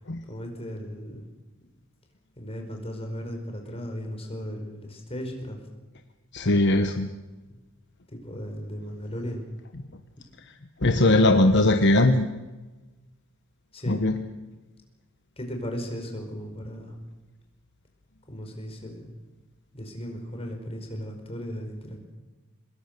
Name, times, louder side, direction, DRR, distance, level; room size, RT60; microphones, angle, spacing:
voice 1, 0.3-1.2 2.4-5.7 8.1-9.4 13.7-14.0 15.4-17.0 18.3-19.0 19.7-22.0, equal, 30° left, 3 dB, 5.0 m, -36 dB
voice 2, 6.3-7.1 10.8-12.3 13.9-14.1, left 2 dB, 60° left, 7 dB, 1.1 m, -20 dB
24.5 x 20.5 x 6.7 m, 1.2 s
head